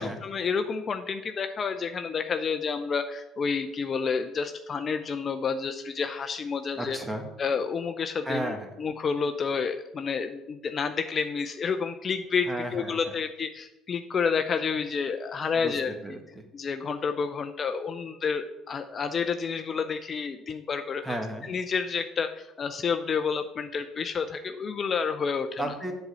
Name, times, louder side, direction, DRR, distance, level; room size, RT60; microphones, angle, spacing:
voice 1, 0.0-7.0 7.4-8.5 8.8-15.9 16.5-21.2 21.5-25.7, left 5 dB, 45° left, 8 dB, 0.6 m, -29 dB
voice 2, 6.7-7.3 8.2-8.7 12.5-13.0 15.6-15.7 16.0-16.4 21.0-21.5 25.6-25.9, right 1 dB, 10° right, 4 dB, 1.7 m, -33 dB
7.9 x 4.3 x 6.9 m, 0.94 s
hypercardioid pair, 70°, 0 cm